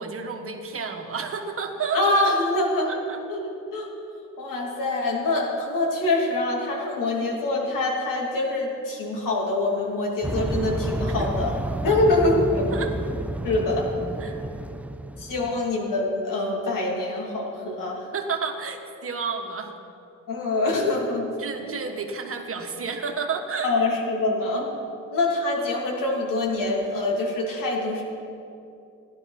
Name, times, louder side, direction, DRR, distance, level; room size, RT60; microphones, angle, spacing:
voice 1, 0.0-2.0 2.9-3.2 11.1-11.3 11.9-12.0 12.7-12.9 14.2-14.4 15.4-15.6 18.1-19.7 21.4-23.7, right 5 dB, 45° right, 4 dB, 1.3 m, -31 dB
voice 2, 1.9-2.9 3.3-3.9 4.4-11.5 11.8-12.6 13.4-13.9 15.2-18.0 20.3-21.3 21.6-21.7 23.6-24.7 25.1-28.0, left 2 dB, 75° left, -1 dB, 3.0 m, -25 dB
sound 1, 10.2-15.6, right 1 dB, 5° right, 0.3 m, -30 dB
14.5 x 11.0 x 5.9 m, 2.6 s
cardioid pair, 125°, 33 cm